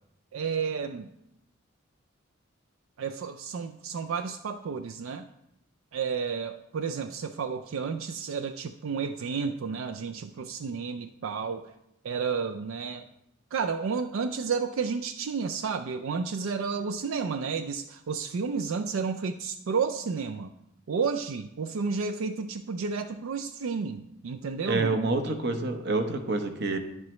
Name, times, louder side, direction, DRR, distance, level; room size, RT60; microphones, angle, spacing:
voice 1, 0.3-1.1 3.0-5.3 5.9-11.6 12.0-13.1 13.5-20.5 20.9-25.0, right 5 dB, 80° right, 9 dB, 0.4 m, -31 dB
voice 2, 24.7-26.8, right 3 dB, 55° right, 6 dB, 0.8 m, -27 dB
10.0 x 7.5 x 3.1 m, 0.83 s
head